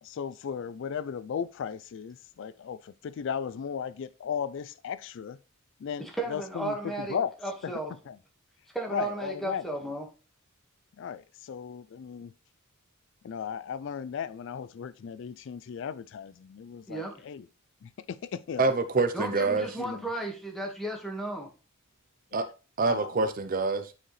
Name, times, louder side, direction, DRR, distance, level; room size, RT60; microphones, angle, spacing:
voice 1, 0.0-5.4 5.8-7.3 7.6-7.7 8.1-8.2 8.9-9.7 11.0-12.3 13.2-17.5 17.8-18.7 19.8-20.0 22.3-22.5 22.9-23.3, left 7 dB, 60° left, 0.3 m, -36 dB
voice 2, 6.0-7.2 7.4-7.9 8.7-10.1 16.9-17.2 19.1-21.5, right 2 dB, ahead, 1.6 m, -34 dB
voice 3, 18.6-19.7 22.3-22.4 22.8-23.9, right 3 dB, 40° right, 0.5 m, -26 dB
8.8 x 4.8 x 3.2 m
head